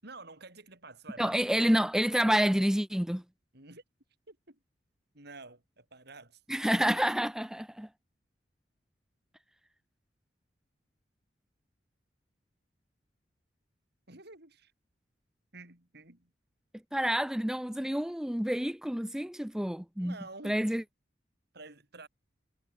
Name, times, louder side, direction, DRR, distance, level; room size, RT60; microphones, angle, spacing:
voice 1, 0.0-1.4 3.5-3.8 4.3-4.6 5.1-6.4 14.1-14.7 15.5-16.3 20.0-20.6 21.5-22.1, right 3 dB, 60° right, 6.8 m, -49 dB
voice 2, 1.2-3.2 6.5-7.9 16.9-20.1 20.4-20.8, equal, 5° right, 0.5 m, -28 dB
head